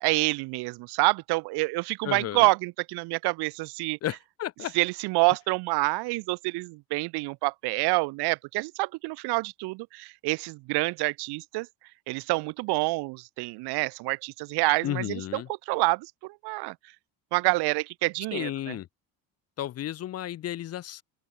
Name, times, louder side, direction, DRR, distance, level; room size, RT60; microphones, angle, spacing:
voice 1, 0.0-4.0 4.7-11.7 12.1-15.4 15.7-16.7 17.3-18.7, right 24 dB, 80° right, 1.4 m, -27 dB
voice 2, 2.0-2.5 4.0-4.7 14.8-15.5 18.3-18.9 19.6-21.0, left 12 dB, 40° left, 1.0 m, -33 dB
open air
cardioid pair, 160°, 39 cm